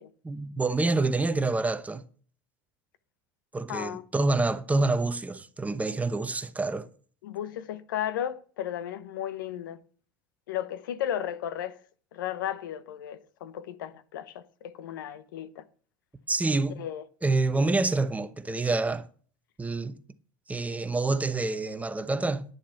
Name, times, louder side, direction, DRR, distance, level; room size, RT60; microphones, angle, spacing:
voice 1, 0.2-2.0 3.5-6.9 16.3-16.8 17.2-19.1 19.6-20.0 20.5-22.4, right 3 dB, 15° right, 1.0 m, -27 dB
voice 2, 3.7-4.0 7.2-9.8 10.5-11.8 12.1-15.6 16.8-17.0, left 10 dB, 80° left, 0.9 m, -34 dB
11.0 x 7.3 x 5.7 m
hypercardioid pair, 90°, 11 cm